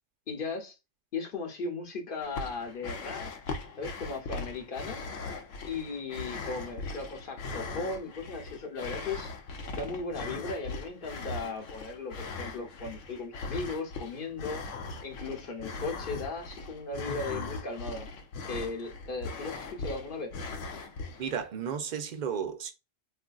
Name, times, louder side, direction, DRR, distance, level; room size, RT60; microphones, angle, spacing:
voice 1, 0.3-0.7 1.1-3.3 3.8-5.0 5.7-9.3 9.7-14.6 15.0-18.1 18.4-20.3, left 3 dB, 50° left, 0.9 m, -37 dB
sound 1, 2.2-21.5, left 3 dB, 90° left, 1.0 m, -39 dB
voice 2, 21.2-22.7, right 7 dB, 55° right, 0.5 m, -33 dB
3.6 x 2.5 x 2.3 m
omnidirectional pair, 1.2 m